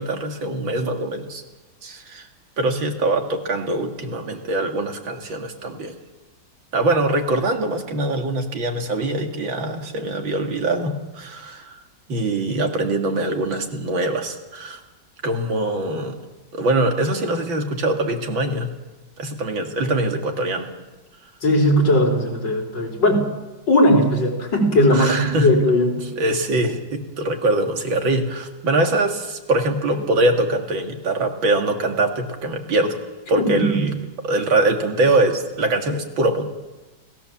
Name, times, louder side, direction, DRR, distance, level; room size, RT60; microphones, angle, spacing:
voice 1, 0.0-1.4 1.8-2.3 2.6-6.0 6.7-11.8 12.1-14.8 15.2-16.2 16.5-18.7 19.2-20.7 24.9-25.5 26.2-33.0 33.3-33.9 34.2-36.5, right 2 dB, 90° right, 3 dB, 2.9 m, -23 dB
voice 2, 21.4-23.2 23.7-26.0 33.4-33.9, equal, 70° left, 1 dB, 4.7 m, -18 dB
29.0 x 17.0 x 7.3 m, 1.2 s
omnidirectional pair, 2.0 m